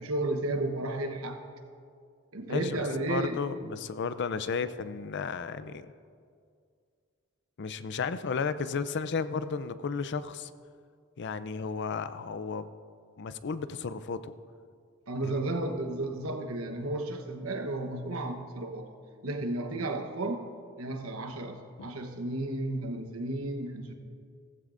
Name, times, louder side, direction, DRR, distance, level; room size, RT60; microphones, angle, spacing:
voice 1, 0.0-1.4 2.3-3.4 15.1-18.9 19.2-20.4 20.8-23.9, right 2 dB, 75° right, 6 dB, 1.1 m, -33 dB
voice 2, 2.5-5.9 7.6-10.5 11.2-12.7 13.2-14.3 15.2-15.4 21.8-21.9, left 5 dB, 55° left, 13 dB, 0.5 m, -33 dB
16.0 x 15.0 x 2.6 m, 2.2 s
head